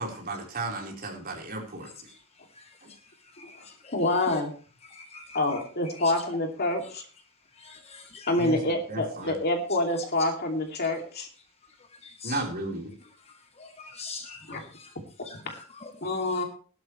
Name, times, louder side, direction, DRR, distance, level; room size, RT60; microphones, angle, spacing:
voice 1, 0.0-1.9 8.4-8.6 8.9-9.3 12.2-12.9, right 2 dB, 40° right, 4.3 m, -34 dB
voice 2, 3.9-4.5 5.3-7.0 8.3-11.3 14.5-14.6 16.0-16.4, left 2 dB, 45° left, 2.6 m, -27 dB
voice 3, 5.1-5.6 6.0-6.1 8.1-8.5 12.2-12.4 13.6-13.7 14.0-14.4 15.3-15.9 16.3-16.4, left 4 dB, 30° left, 1.2 m, -41 dB
17.0 x 12.0 x 3.2 m
head